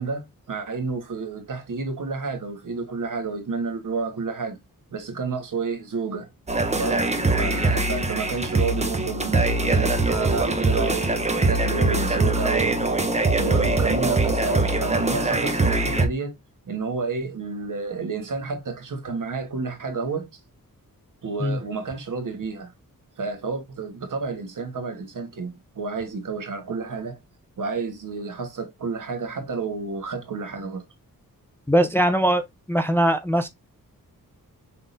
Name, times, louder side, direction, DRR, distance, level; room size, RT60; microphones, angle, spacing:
voice 1, 0.0-4.6 4.9-6.3 6.7-11.1 11.4-13.0 13.4-16.4 16.6-20.3 21.2-22.7 23.2-27.2 27.6-30.8, right 4 dB, 60° right, 1.3 m, -30 dB
sound 1, 6.5-16.1, right 2 dB, 20° right, 0.8 m, -22 dB
voice 2, 31.7-32.4 32.7-33.5, right 1 dB, 5° left, 0.5 m, -20 dB
5.6 x 3.7 x 2.5 m
wide cardioid pair, 145°, 35 cm